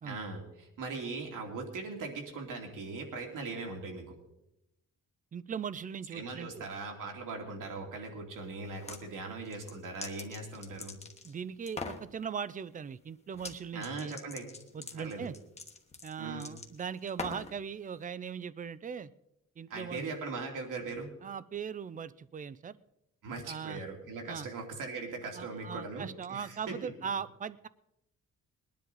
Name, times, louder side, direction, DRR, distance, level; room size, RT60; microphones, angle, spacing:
voice 1, 0.0-4.2 6.1-11.0 13.7-14.5 14.9-15.3 16.2-16.5 19.7-21.1 23.2-26.9, right 3 dB, 80° right, 2 dB, 2.8 m, -40 dB
voice 2, 5.3-6.7 11.2-14.2 14.7-15.3 16.0-19.1 19.6-20.1 21.2-22.7 23.5-23.8 24.3-24.5 25.3-27.7, right 7 dB, 25° right, 18 dB, 0.4 m, -39 dB
sound 1, 8.6-9.0 9.5-11.3 11.7-12.0 13.3-13.6 13.8-17.6, left 4 dB, 20° left, 1.1 m, -43 dB
20.5 x 10.5 x 4.0 m, 0.86 s
wide cardioid pair, 155°, 32 cm